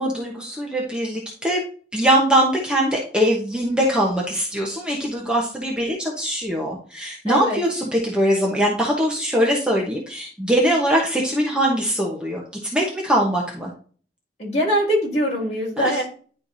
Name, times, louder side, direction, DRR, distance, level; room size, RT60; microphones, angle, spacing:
voice 1, 0.0-1.6 1.9-13.7 15.8-16.0, equal, 5° right, -3 dB, 0.9 m, -22 dB
voice 2, 7.2-7.6 14.4-16.0, equal, 40° left, -4 dB, 3.3 m, -22 dB
10.5 x 4.5 x 2.6 m, 0.43 s
head